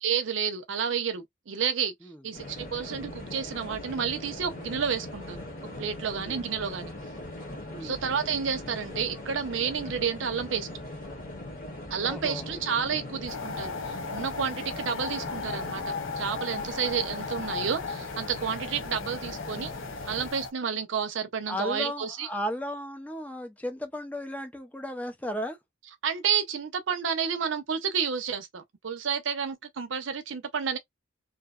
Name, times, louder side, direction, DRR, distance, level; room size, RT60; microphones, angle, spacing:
voice 1, 0.0-1.9 2.2-5.4 5.8-6.9 7.8-10.7 11.9-19.7 20.1-22.3 26.0-30.8, right 7 dB, 75° right, 0.6 m, -30 dB
sound 1, 2.3-20.3, left 1 dB, 45° left, 0.9 m, -40 dB
voice 2, 7.7-8.0 12.0-12.5 21.5-25.6, equal, 10° left, 0.5 m, -35 dB
sound 2, 13.3-20.5, left 5 dB, 85° left, 0.5 m, -36 dB
2.7 x 2.1 x 2.3 m
head